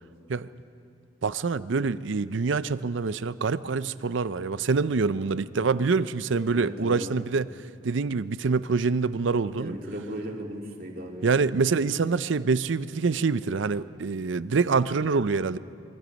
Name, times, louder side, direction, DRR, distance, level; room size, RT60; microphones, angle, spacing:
voice 1, 1.2-7.5 7.8-9.8 11.2-15.6, right 4 dB, 75° right, 15 dB, 0.5 m, -25 dB
voice 2, 6.5-7.1 9.6-11.3, right 1 dB, 50° right, 0 dB, 2.5 m, -36 dB
25.0 x 23.0 x 5.3 m, 2.4 s
head